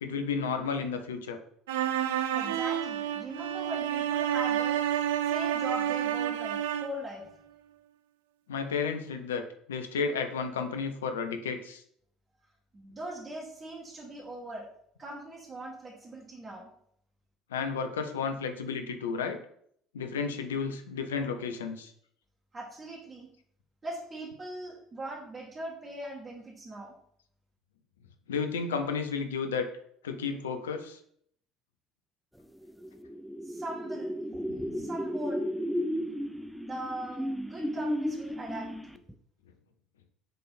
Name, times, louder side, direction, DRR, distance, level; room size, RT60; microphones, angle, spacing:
voice 1, 0.0-1.4 8.5-9.4 9.7-11.8 17.5-19.4 19.9-21.9 28.3-29.7 30.0-31.0, left 5 dB, 80° left, 7 dB, 0.7 m, -32 dB
sound 1, 1.7-7.0, right 11 dB, 75° right, 0.4 m, -29 dB
voice 2, 2.3-4.8 5.3-7.3 12.7-14.7 15.0-16.7 22.5-23.3 23.8-26.9 33.4-34.2 34.7-35.5 36.3-38.7, right 1 dB, 30° right, -4 dB, 2.1 m, -40 dB
sound 2, 32.6-39.1, equal, ahead, 0.5 m, -34 dB
6.8 x 3.7 x 4.2 m, 0.66 s
figure-of-eight pair, 65°, 0 cm